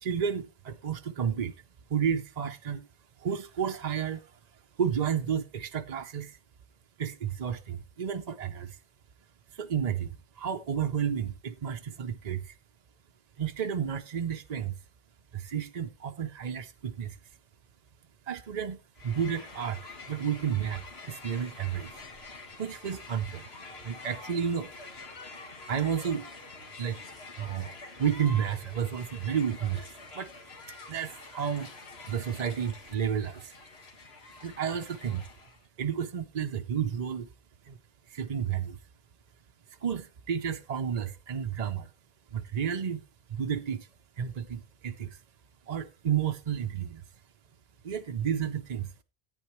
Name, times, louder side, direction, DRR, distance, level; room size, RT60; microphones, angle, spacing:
voice 1, 0.0-1.5 1.9-2.9 3.2-4.3 4.8-6.4 7.0-8.8 9.5-12.5 13.4-14.7 15.3-17.2 18.3-18.8 19.0-22.0 22.6-23.5 23.8-24.7 25.6-26.3 26.8-27.0 27.4-27.7 28.0-29.9 30.1-30.3 30.9-31.7 32.1-33.5 34.4-35.2 35.8-37.3 37.7-37.8 38.1-38.8 39.8-41.9 42.3-43.0 43.3-43.9 44.2-45.2 45.7-47.0 47.8-48.9, right 8 dB, 45° right, 0.6 m, -31 dB
Crowd, 18.9-35.6, left 3 dB, 80° left, 1.9 m, -47 dB
14.0 x 9.1 x 3.0 m
omnidirectional pair, 1.0 m